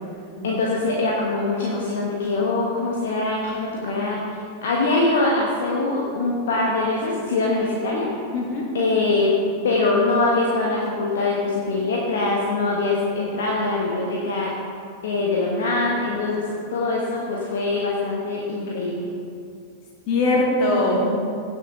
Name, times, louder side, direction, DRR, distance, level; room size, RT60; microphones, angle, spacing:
voice 1, 0.4-8.2 8.7-9.4 9.6-14.6 15.0-19.1, left 3 dB, 60° left, -3 dB, 1.4 m, -23 dB
voice 2, 8.3-8.7 20.1-21.1, left 2 dB, 40° left, -3 dB, 2.7 m, -21 dB
16.5 x 7.1 x 3.8 m, 2.4 s
figure-of-eight pair, 90°, 0 cm